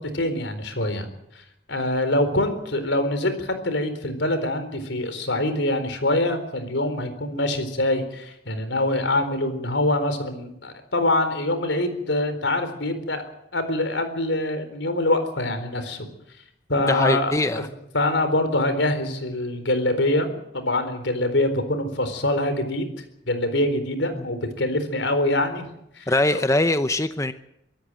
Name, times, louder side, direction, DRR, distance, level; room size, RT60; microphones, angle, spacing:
voice 1, 0.1-1.1 1.7-13.2 13.5-16.1 16.7-17.6 17.9-22.9 23.3-25.7 26.0-26.4, left 1 dB, 85° left, 10 dB, 4.2 m, -24 dB
voice 2, 16.9-17.7 24.2-24.3 26.1-27.3, left 2 dB, 15° left, 10 dB, 0.7 m, -22 dB
24.5 x 13.5 x 9.1 m, 0.79 s
head